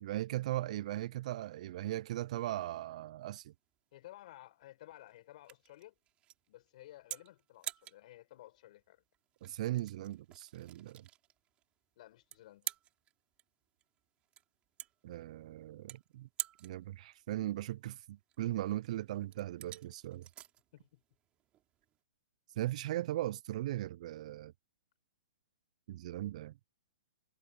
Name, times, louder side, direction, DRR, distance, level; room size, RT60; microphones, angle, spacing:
voice 1, 0.0-3.5 9.4-11.1 15.0-16.3 16.6-20.3 22.6-24.5 25.9-26.5, right 14 dB, 45° right, 0.3 m, -38 dB
sound 1, 3.2-22.0, right 13 dB, 20° right, 3.9 m, -49 dB
voice 2, 3.9-5.9 6.5-9.0 12.0-12.7 20.7-21.0, left 15 dB, 45° left, 5.3 m, -55 dB
hypercardioid pair, 150°, 5 cm